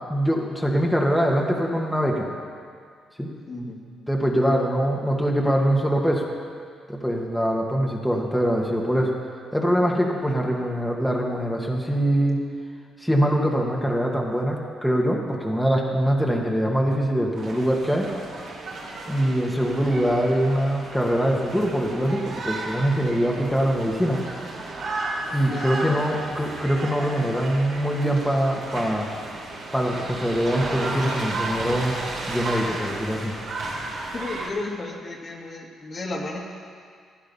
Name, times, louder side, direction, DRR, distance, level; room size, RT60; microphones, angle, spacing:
voice 1, 0.0-2.3 3.2-3.3 4.1-6.2 6.9-9.1 9.5-12.4 13.0-18.1 19.1-24.2 25.3-29.1 29.7-32.0 32.3-33.3, equal, ahead, -2 dB, 1.8 m, -23 dB
voice 2, 3.5-3.8 25.5-26.3 34.1-36.5, left 2 dB, 40° left, 0 dB, 2.0 m, -33 dB
sound 1, 17.4-34.5, right 2 dB, 70° right, 3.8 m, -33 dB
15.5 x 10.5 x 5.5 m, 2.1 s
cardioid pair, 90°, 0 cm